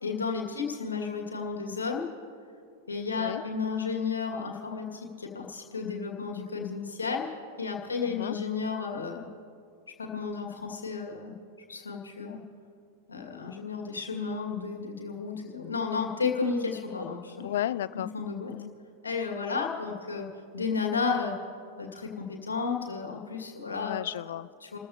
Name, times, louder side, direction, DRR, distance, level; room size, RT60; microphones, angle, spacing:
voice 1, 0.0-2.1 2.9-7.3 7.6-9.3 10.0-11.3 11.7-12.4 13.1-17.5 18.1-18.5 19.0-20.3 20.5-21.3 21.8-24.0 24.6-24.8, left 5 dB, 75° left, 1 dB, 2.2 m, -32 dB
voice 2, 8.1-8.4 17.4-18.1 18.5-18.7 23.8-24.5, left 12 dB, 60° left, 17 dB, 0.3 m, -33 dB
30.0 x 14.0 x 2.9 m, 2.4 s
figure-of-eight pair, 90°, 0 cm